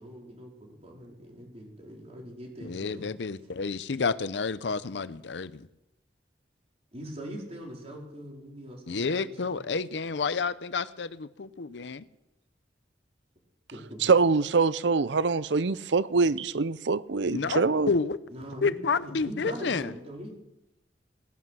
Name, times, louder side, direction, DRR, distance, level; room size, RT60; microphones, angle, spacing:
voice 1, 0.0-3.1 6.9-9.6 13.7-14.2 18.3-20.4, equal, 35° right, 4.3 m, -42 dB
voice 2, 2.6-5.7 8.9-12.0 17.3-18.2 18.6-19.8, left 4 dB, 75° left, 0.6 m, -30 dB
voice 3, 14.0-17.9, right 4 dB, 75° right, 0.6 m, -24 dB
18.0 x 11.0 x 6.2 m
head